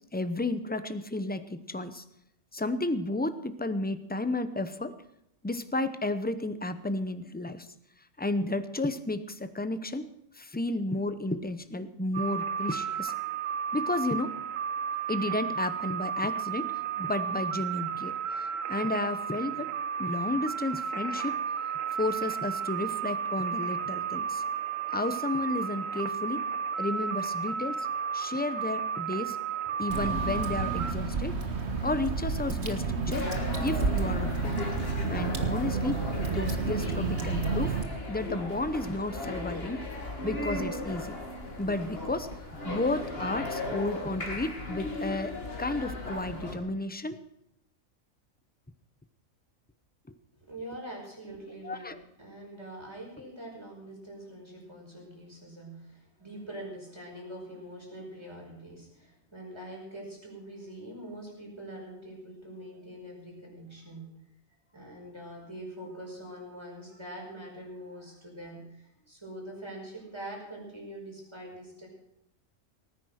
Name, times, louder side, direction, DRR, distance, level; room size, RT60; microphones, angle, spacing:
voice 1, 0.1-2.0 2.5-4.9 5.4-7.7 8.2-10.0 10.4-13.1 13.7-14.3 15.1-19.7 20.0-21.4 22.0-24.4 24.9-26.4 26.8-27.9 28.1-29.4 29.8-31.4 31.8-33.2 33.6-34.5 35.1-36.0 36.3-37.8 38.1-39.8 40.2-41.2 41.6-42.3 42.6-45.3 45.6-47.2 51.6-52.0, left 2 dB, 10° left, 11 dB, 0.5 m, -32 dB
sound 1, 12.1-30.9, right 7 dB, 75° right, 1.3 m, -33 dB
Water / Drip, 29.9-37.8, right 4 dB, 55° right, 1.8 m, -30 dB
sound 2, 33.1-46.6, left 2 dB, 45° left, 2.5 m, -36 dB
voice 2, 50.3-64.1 64.7-71.9, right 1 dB, 20° right, -1 dB, 5.4 m, -44 dB
18.5 x 10.0 x 6.4 m, 0.79 s
omnidirectional pair, 1.4 m